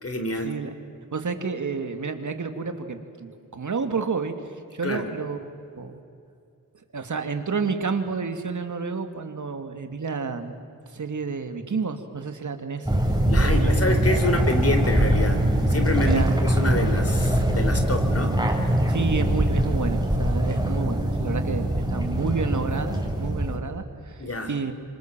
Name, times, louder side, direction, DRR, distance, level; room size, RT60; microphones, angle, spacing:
voice 1, 0.0-0.6 4.8-5.1 13.2-18.4 24.2-24.5, left 2 dB, 45° left, 6 dB, 3.9 m, -27 dB
voice 2, 1.1-4.4 4.7-6.0 6.9-10.6 10.9-12.9 13.4-14.0 16.0-16.3 18.9-24.7, right 4 dB, 60° right, 7 dB, 2.4 m, -30 dB
sound 1, 12.9-23.6, right 1 dB, 10° right, 5.0 m, -22 dB
27.0 x 25.0 x 7.6 m, 2.5 s
cardioid pair, 60°, 34 cm